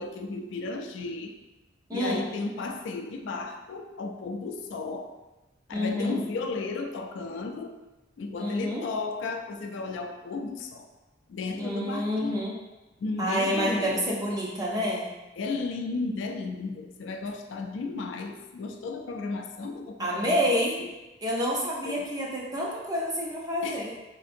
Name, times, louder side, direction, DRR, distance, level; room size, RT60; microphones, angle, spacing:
voice 1, 0.0-1.3 1.9-5.1 5.7-7.8 8.2-10.9 11.3-12.4 13.0-14.1 15.4-20.4 20.8-20.9 21.9-22.0 23.6-23.8, left 3 dB, 80° left, 5 dB, 0.3 m, -34 dB
voice 2, 1.9-2.3 5.7-6.2 8.4-8.9 11.6-12.6 13.2-15.1 20.0-20.8 21.2-23.9, equal, 20° right, -3 dB, 0.5 m, -28 dB
3.5 x 2.5 x 2.5 m, 1.1 s
head